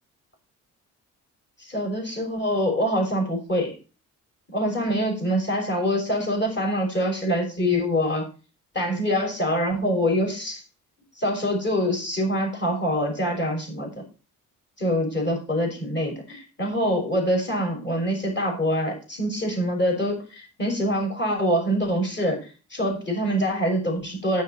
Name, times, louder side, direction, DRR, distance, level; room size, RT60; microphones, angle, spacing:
voice 1, 1.6-3.8 4.5-8.3 8.7-10.6 11.2-14.0 14.8-24.4, equal, 35° left, 1 dB, 6.3 m, -25 dB
9.6 x 9.3 x 4.5 m, 0.33 s
cardioid pair, 85°, 32 cm